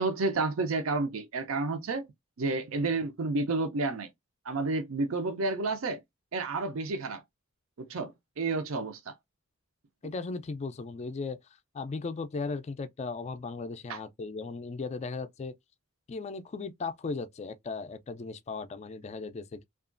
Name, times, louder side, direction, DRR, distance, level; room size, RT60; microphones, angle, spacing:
voice 1, 0.0-2.1 2.4-4.1 4.4-6.0 6.3-7.2 7.8-9.1 13.9-14.0, right 3 dB, 70° right, 0.5 m, -30 dB
voice 2, 10.0-11.4 11.7-15.5 16.1-19.6, left 4 dB, 30° left, 0.3 m, -37 dB
2.9 x 2.4 x 2.4 m
head